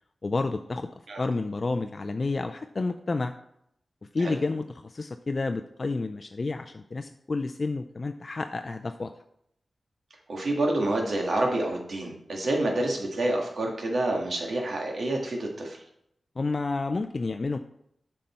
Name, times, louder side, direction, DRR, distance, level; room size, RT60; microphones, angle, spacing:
voice 1, 0.2-0.9 1.2-3.3 4.1-9.1 16.4-17.6, left 3 dB, 45° left, 8 dB, 0.4 m, -30 dB
voice 2, 10.3-15.8, right 1 dB, 70° right, 1 dB, 1.8 m, -28 dB
7.5 x 5.5 x 4.3 m, 0.75 s
wide cardioid pair, 85°, 0 cm